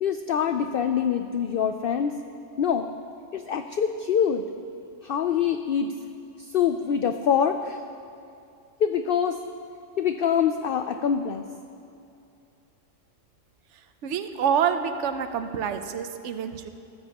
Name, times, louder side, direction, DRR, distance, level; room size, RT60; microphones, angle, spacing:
voice 1, 0.0-2.1 2.6-2.9 3.3-4.4 5.0-5.9 6.4-7.8 8.8-9.4 10.0-11.4, left 8 dB, 60° left, 7 dB, 0.6 m, -25 dB
voice 2, 14.0-16.7, right 7 dB, 70° right, 8 dB, 1.0 m, -27 dB
23.0 x 14.0 x 2.9 m, 2.5 s
omnidirectional pair, 1.3 m